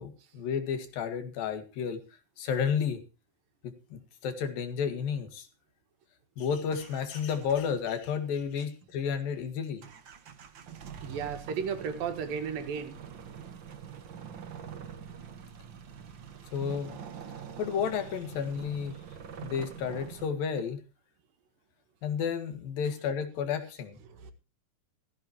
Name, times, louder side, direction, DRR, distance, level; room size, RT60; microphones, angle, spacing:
voice 1, 0.0-2.0 2.4-3.0 3.6-5.5 6.4-9.8 16.5-17.0 17.6-19.0 19.4-20.8 22.0-24.0, left 7 dB, 90° left, 3.7 m, -32 dB
sound 1, 6.6-8.1 8.4-8.5 8.8-9.3 9.8-20.3, right 7 dB, 50° right, 1.4 m, -45 dB
voice 2, 11.0-13.0 24.2-24.3, right 6 dB, 85° right, 3.4 m, -34 dB
16.0 x 15.0 x 3.0 m
omnidirectional pair, 4.0 m